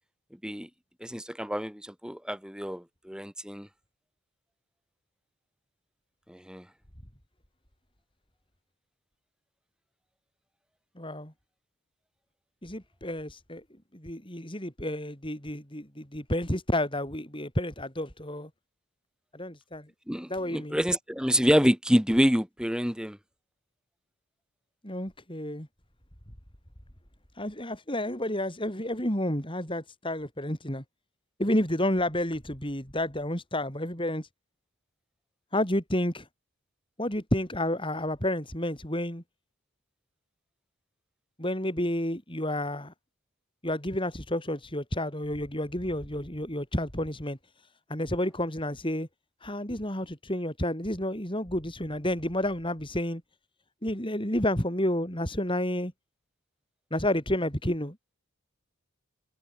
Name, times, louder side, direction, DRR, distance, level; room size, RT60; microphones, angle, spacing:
voice 1, 1.0-3.7 6.3-6.6 20.1-23.2, equal, 5° right, 2.8 m, -27 dB
voice 2, 11.0-11.3 12.6-13.6 13.9-18.5 19.3-19.9 20.3-20.8 24.8-25.7 27.4-30.8 31.4-34.3 35.5-36.3 37.0-39.2 41.4-42.9 43.6-47.4 47.9-49.1 49.4-53.2 53.8-55.9 56.9-58.2, left 1 dB, 25° left, 5.9 m, -30 dB
head